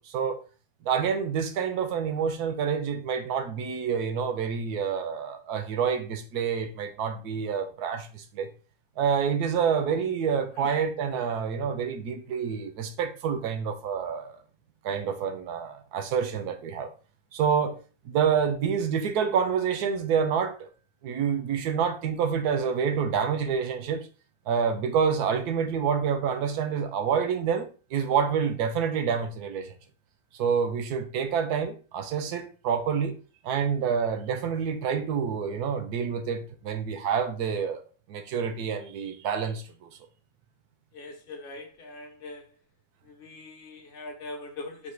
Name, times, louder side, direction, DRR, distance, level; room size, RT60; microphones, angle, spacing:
voice 1, 0.1-0.4 0.8-8.5 9.0-14.4 14.8-16.9 17.3-17.8 18.0-20.7 21.0-24.1 24.5-29.7 30.4-33.2 33.4-37.8 38.1-39.9, right 7 dB, 85° right, 1.2 m, -28 dB
voice 2, 40.9-42.5 43.0-44.9, left 2 dB, 45° left, 0.8 m, -42 dB
4.1 x 2.8 x 4.4 m
omnidirectional pair, 1.6 m